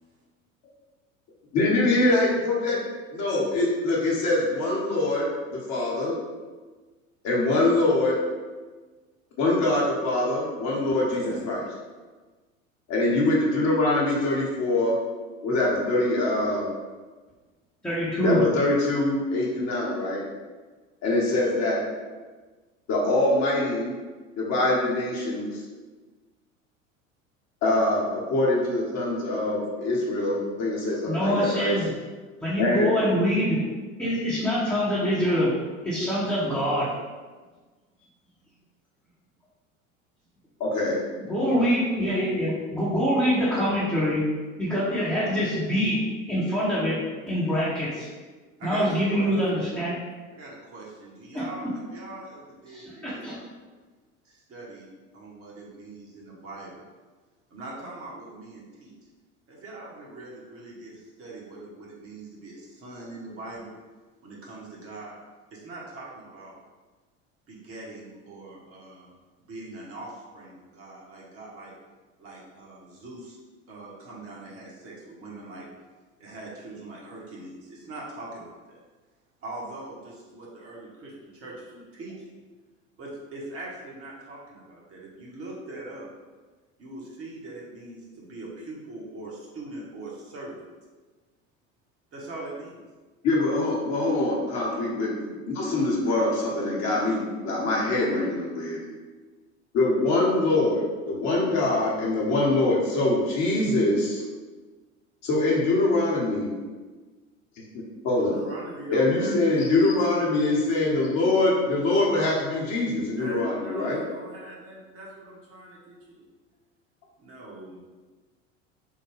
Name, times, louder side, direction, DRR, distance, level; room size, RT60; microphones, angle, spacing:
voice 1, 1.5-2.8 3.1-6.2 7.2-8.2 9.4-11.6 12.9-15.0 15.4-16.7 18.2-20.2 21.0-21.8 22.9-23.9 24.4-25.6 27.6-31.7 32.6-32.9 40.6-41.0 93.2-98.8 99.7-104.2 105.2-106.6 108.0-108.3 108.9-114.0, left 2 dB, 40° left, -4 dB, 1.0 m, -24 dB
voice 2, 11.0-11.4 48.6-49.3 50.3-53.5 54.2-54.9 55.1-56.8 57.5-58.9 59.5-63.8 64.2-65.2 65.5-66.6 67.5-69.1 69.5-71.7 72.2-73.4 73.7-75.7 76.2-78.8 79.4-81.6 81.9-82.3 83.0-86.1 86.8-90.6 92.1-92.8 108.2-111.1 113.2-116.2 117.2-117.8, right 2 dB, 35° right, -4 dB, 1.0 m, -41 dB
voice 3, 17.8-18.4 31.1-31.9 32.4-33.6 34.0-35.5 35.8-36.9 41.3-44.2 44.6-46.0 46.3-48.1 48.6-50.0 51.3-51.7 52.7-53.4, equal, 5° left, -10 dB, 0.8 m, -25 dB
3.6 x 2.1 x 3.2 m, 1.3 s
figure-of-eight pair, 75°, 40 cm